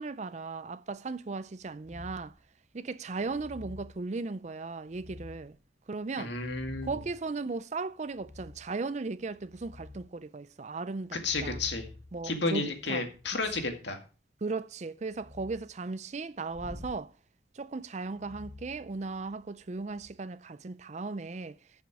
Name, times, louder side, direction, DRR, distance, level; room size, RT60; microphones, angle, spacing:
voice 1, 0.0-2.3 2.7-5.6 5.9-6.4 6.8-11.6 12.1-13.1 14.4-17.1 17.5-21.6, right 3 dB, 40° right, 0.4 m, -37 dB
sound 1, 1.8-2.4 3.2-3.9 4.9-5.6 6.2-7.2 8.1-8.7 9.2-10.1 11.1-13.8 15.1-15.6 16.5-17.0 18.1-19.4 19.8-20.1, left 2 dB, 10° left, 5.1 m, -48 dB
voice 2, 6.2-6.9 11.1-11.9 12.2-14.0, left 3 dB, 65° left, 2.1 m, -32 dB
14.0 x 7.1 x 4.8 m
head